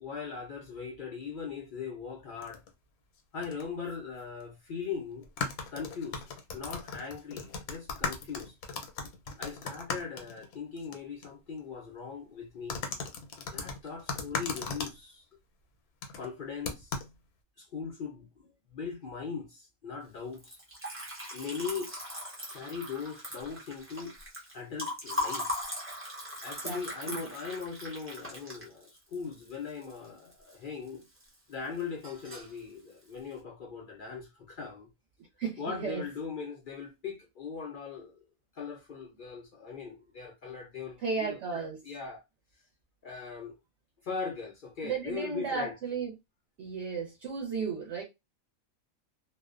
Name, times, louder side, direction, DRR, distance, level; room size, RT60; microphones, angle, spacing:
voice 1, 0.0-2.6 3.3-5.3 5.7-6.2 6.5-8.5 9.4-12.8 13.5-15.2 16.2-17.0 17.6-20.6 21.3-21.9 22.5-24.2 24.5-25.6 26.4-31.0 31.5-34.9 35.6-38.2 38.6-42.2 43.0-43.5 44.0-45.7, left 5 dB, 65° left, 0.5 m, -40 dB
sound 1, 2.4-2.7 3.4-3.6 3.9-4.0 5.2-10.9 11.2-11.3 12.7-14.9 16.0-16.3 16.6-17.1, left 5 dB, 90° left, 1.1 m, -37 dB
Liquid, 20.3-30.5 30.9-31.5 31.8-32.6, left 1 dB, 20° right, 0.4 m, -39 dB
voice 2, 26.6-27.3 35.4-36.0 41.0-41.8 44.8-46.1 46.6-48.0, right 5 dB, 60° right, 0.9 m, -34 dB
2.6 x 2.1 x 2.4 m
omnidirectional pair, 1.5 m